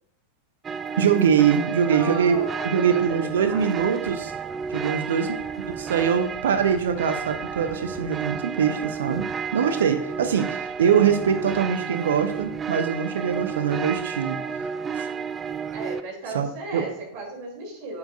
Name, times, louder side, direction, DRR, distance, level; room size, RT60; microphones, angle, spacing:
sound 1, 0.6-16.0, right 6 dB, 20° right, 0.4 m, -32 dB
voice 1, 1.0-2.4 2.6-4.3 4.7-5.3 5.7-9.3 9.5-14.4 14.9-15.1 16.3-16.5 16.7-16.9, right 7 dB, 60° right, 8 dB, 0.7 m, -23 dB
voice 2, 1.9-3.9 4.7-5.1 15.7-18.0, right 3 dB, 45° right, -1 dB, 3.4 m, -36 dB
9.5 x 7.1 x 2.6 m, 0.78 s
figure-of-eight pair, 90°, 0 cm